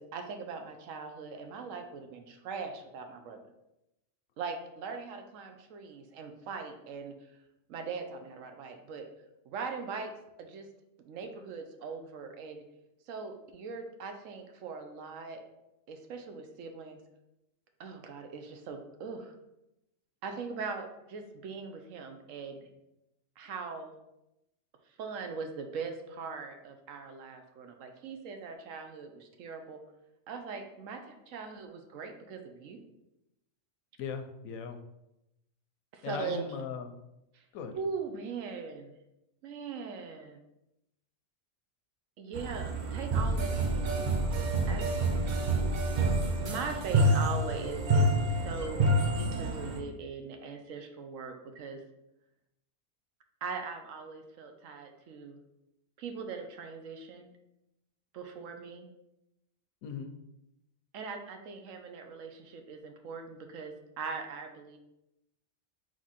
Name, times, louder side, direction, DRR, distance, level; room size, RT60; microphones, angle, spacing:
voice 1, 0.0-3.4 4.4-7.3 7.7-9.1 9.4-10.1 10.4-10.7 11.0-12.6 13.1-15.4 15.9-17.0 17.8-19.3 20.2-22.7 23.4-24.0 25.0-29.8 30.3-32.8 35.9-36.4 37.3-37.4 37.8-39.0 39.4-40.4 42.2-44.1 44.7-45.2 46.4-51.8 53.4-55.4 56.0-57.3 58.1-58.9 60.9-64.8, right 5 dB, 75° right, 5 dB, 1.0 m, -40 dB
voice 2, 34.0-34.8 36.0-36.9 37.5-37.7 59.8-60.1, left 6 dB, 90° left, 6 dB, 1.0 m, -38 dB
sound 1, 42.3-49.8, right 1 dB, 50° right, 0.5 m, -28 dB
4.0 x 3.1 x 4.1 m, 0.88 s
omnidirectional pair, 1.4 m